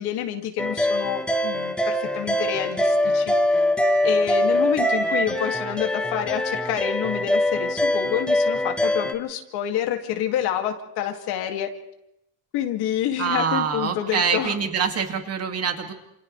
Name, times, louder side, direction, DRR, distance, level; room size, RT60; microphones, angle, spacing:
voice 1, 0.0-3.6 4.0-11.7 12.5-14.6, left 10 dB, 90° left, 4 dB, 2.5 m, -28 dB
sound 1, 0.6-9.1, left 1 dB, 5° left, 1.3 m, -23 dB
voice 2, 13.2-15.9, right 6 dB, 40° right, 5 dB, 2.4 m, -25 dB
29.5 x 27.5 x 3.4 m, 0.81 s
cardioid pair, 135°, 37 cm